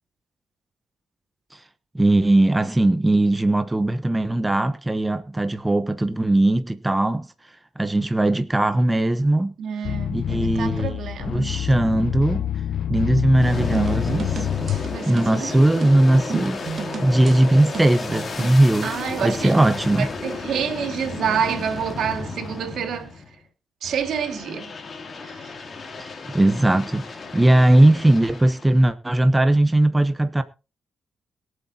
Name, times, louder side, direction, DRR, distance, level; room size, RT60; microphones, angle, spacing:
voice 1, 1.9-7.3 7.8-9.5 10.1-11.0 11.3-12.4 12.9-14.5 15.1-16.6 17.0-18.9 19.2-20.1 26.0-30.4, right 1 dB, 10° right, 1.0 m, -19 dB
voice 2, 9.6-11.7 14.8-15.6 18.8-19.6 20.0-23.1 23.8-24.7 25.2-25.5, right 8 dB, 75° right, 2.2 m, -28 dB
sound 1, 9.8-15.0, left 10 dB, 70° left, 0.7 m, -27 dB
Aircraft, 13.3-23.4 23.8-28.8, left 4 dB, 35° left, 3.0 m, -34 dB
sound 2, 13.5-18.6, right 6 dB, 45° right, 2.6 m, -33 dB
22.5 x 8.0 x 2.9 m
cardioid pair, 135°, 0 cm